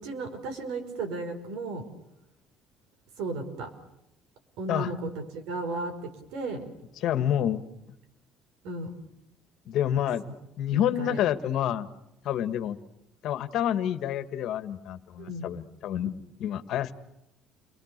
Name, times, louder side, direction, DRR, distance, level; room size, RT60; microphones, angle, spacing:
voice 1, 0.0-1.9 3.2-3.7 4.6-6.7 8.6-8.9 10.7-11.2 15.2-15.5, right 2 dB, 80° right, 5 dB, 5.2 m, -34 dB
voice 2, 7.0-7.6 9.7-10.2 10.6-11.9 12.2-12.8 13.2-16.1 16.4-16.9, left 10 dB, 55° left, 11 dB, 1.8 m, -28 dB
30.0 x 23.5 x 6.8 m, 0.86 s
cardioid pair, 165°, 0 cm